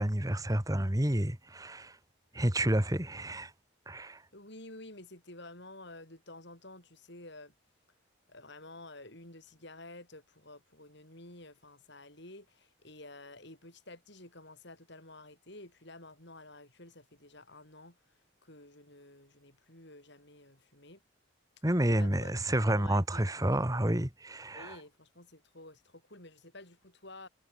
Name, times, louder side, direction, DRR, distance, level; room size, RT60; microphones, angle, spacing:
voice 1, 0.0-2.0 2.3-3.5 3.9-4.2 21.6-24.8, right 1 dB, 15° right, 1.7 m, -29 dB
voice 2, 4.3-7.5 8.3-21.0 21.7-23.2 24.5-27.3, left 2 dB, 55° left, 7.4 m, -51 dB
head